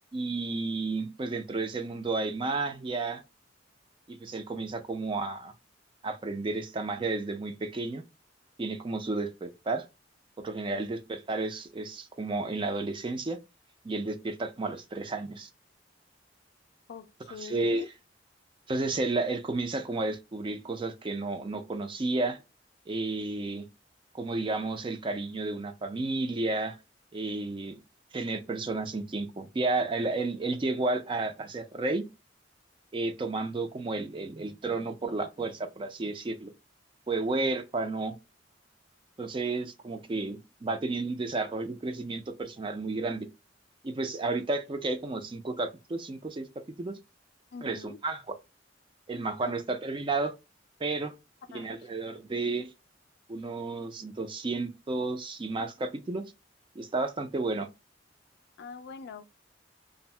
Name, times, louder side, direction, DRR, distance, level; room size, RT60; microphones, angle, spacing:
voice 1, 0.1-3.2 4.1-5.5 6.0-8.0 8.6-9.9 10.4-13.4 13.8-15.5 17.4-17.8 18.7-22.4 22.9-23.7 24.1-26.8 27.1-27.8 28.1-32.0 32.9-36.5 37.1-38.2 39.2-43.3 43.8-46.5 46.8-47.0 47.6-48.4 49.1-50.3 50.8-51.1 51.5-52.7 53.3-56.2 56.8-57.7, right 3 dB, 25° right, 0.4 m, -32 dB
voice 2, 16.9-17.9 47.5-48.0 49.4-49.5 51.5-51.9 58.6-59.2, left 5 dB, 60° left, 0.3 m, -44 dB
2.6 x 2.0 x 3.1 m
head